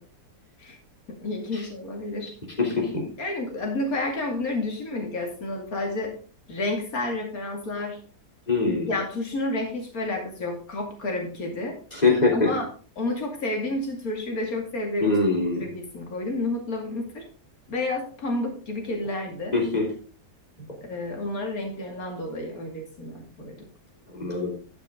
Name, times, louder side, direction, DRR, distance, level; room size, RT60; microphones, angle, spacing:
voice 1, 1.1-2.3 3.2-6.2 6.5-8.0 8.9-11.7 12.3-12.7 13.0-15.2 15.6-17.2 17.7-19.5 20.8-23.6, left 2 dB, 60° left, 2 dB, 3.0 m, -30 dB
voice 2, 2.6-3.0 8.5-8.9 11.9-12.5 15.0-15.7 19.5-19.9 24.1-24.5, left 3 dB, 25° left, -1 dB, 3.5 m, -23 dB
12.5 x 7.2 x 3.8 m, 0.39 s
omnidirectional pair, 1.8 m